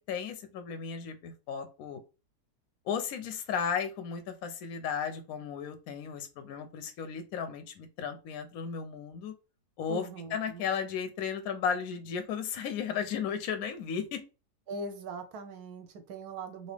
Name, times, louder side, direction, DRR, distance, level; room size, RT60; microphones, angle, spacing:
voice 1, 0.1-2.0 2.9-9.3 9.8-14.2, left 7 dB, 70° left, 7 dB, 0.9 m, -35 dB
voice 2, 9.9-10.6 14.7-16.7, right 3 dB, 75° right, 7 dB, 1.0 m, -41 dB
2.9 x 2.7 x 3.2 m, 0.30 s
omnidirectional pair, 1.8 m